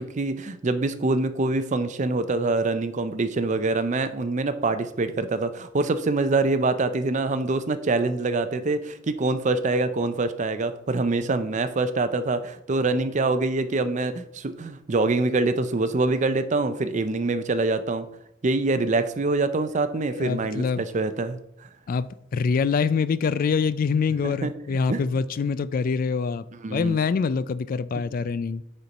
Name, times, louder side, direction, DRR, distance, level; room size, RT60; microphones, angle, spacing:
voice 1, 0.0-18.1 18.4-21.4 24.2-24.5 24.9-25.0 26.6-27.0, right 3 dB, 40° right, 0.5 m, -25 dB
voice 2, 20.2-20.8 21.9-26.4 26.7-28.6, left 5 dB, 45° left, 0.3 m, -25 dB
6.7 x 4.4 x 5.2 m
head